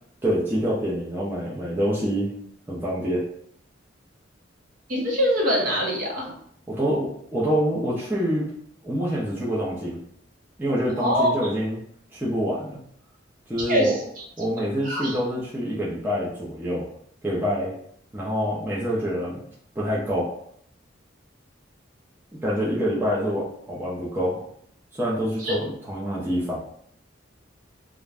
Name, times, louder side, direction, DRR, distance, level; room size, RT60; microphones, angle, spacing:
voice 1, 0.2-2.3 2.7-3.2 6.7-8.5 8.8-10.0 10.6-11.8 12.1-12.8 13.5-14.0 14.4-16.8 17.2-17.7 18.1-19.4 19.8-20.3 22.4-24.4 25.0-26.6, equal, 10° right, -7 dB, 0.5 m, -26 dB
voice 2, 4.9-6.3 11.0-11.3 13.6-14.2 14.8-15.2 25.4-25.5, equal, 45° right, -2 dB, 0.8 m, -23 dB
2.4 x 2.1 x 3.3 m, 0.67 s
head